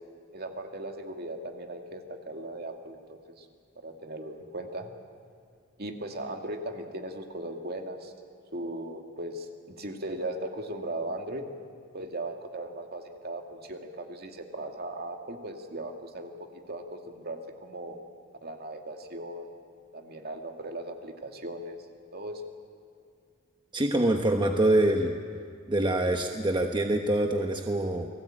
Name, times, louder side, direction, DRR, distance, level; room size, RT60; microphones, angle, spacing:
voice 1, 0.3-3.5 3.8-4.9 5.8-8.1 8.5-11.5 11.9-16.3 16.7-18.0 18.4-19.5 19.9-21.8 22.1-22.4, right 1 dB, 50° right, 4 dB, 2.4 m, -38 dB
voice 2, 23.7-25.1 25.7-28.1, right 1 dB, 25° right, 4 dB, 1.2 m, -25 dB
29.5 x 19.5 x 9.0 m, 2.3 s
head